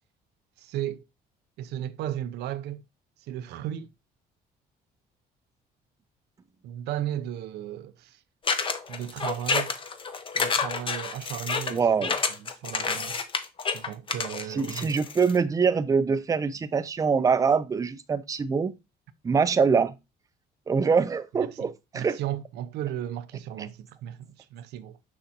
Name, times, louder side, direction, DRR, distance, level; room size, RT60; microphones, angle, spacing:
voice 1, 0.6-1.0 1.6-2.8 3.2-3.9 6.6-8.2 8.9-9.8 10.3-11.9 12.4-13.2 13.7-14.9 21.3-21.7 21.9-25.0, right 11 dB, 80° right, 0.6 m, -35 dB
sound 1, 8.5-15.4, left 5 dB, 30° left, 0.7 m, -29 dB
voice 2, 11.7-12.1 14.5-18.7 19.2-19.9 20.7-22.2, right 5 dB, 20° right, 0.5 m, -24 dB
6.4 x 5.6 x 2.8 m
cardioid pair, 110°, 17 cm